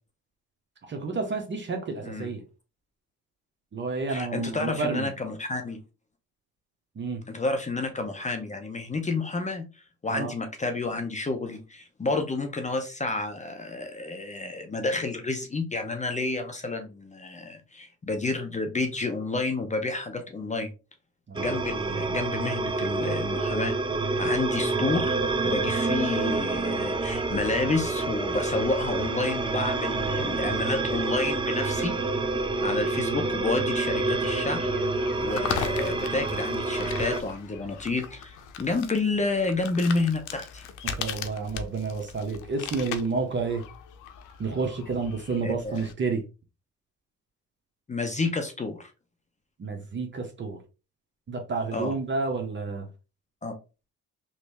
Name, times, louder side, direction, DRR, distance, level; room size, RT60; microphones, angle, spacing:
voice 1, 0.9-2.4 3.7-5.1 7.0-7.2 10.1-10.3 21.3-21.4 40.8-43.7 44.4-46.2 49.6-50.6 51.3-52.9, right 4 dB, 40° right, 0.8 m, -30 dB
voice 2, 4.1-5.8 7.3-9.6 10.0-20.7 21.4-23.7 24.2-25.1 25.4-31.9 32.6-34.7 35.2-40.6 45.4-45.8 47.9-48.9 51.7-51.9 53.4-53.5, left 3 dB, 25° left, 0.7 m, -30 dB
sound 1, 21.3-37.2, right 3 dB, 15° right, 0.5 m, -28 dB
sound 2, 26.9-45.9, left 8 dB, 85° left, 0.6 m, -40 dB
3.1 x 2.6 x 3.3 m
cardioid pair, 90°, 30 cm